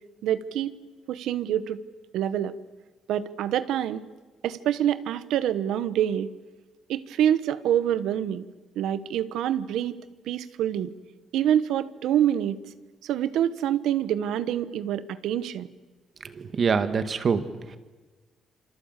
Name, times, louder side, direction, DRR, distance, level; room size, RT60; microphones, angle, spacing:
voice 1, 0.2-0.7 1.1-1.8 2.1-2.5 3.1-4.0 4.4-6.3 6.9-8.4 8.8-9.9 10.3-10.9 11.3-12.6 13.0-15.7, right 10 dB, 85° right, 14 dB, 1.1 m, -26 dB
voice 2, 16.2-17.8, right 5 dB, 45° right, 10 dB, 2.0 m, -26 dB
27.5 x 25.5 x 8.3 m, 1.3 s
cardioid pair, 90°, 0 cm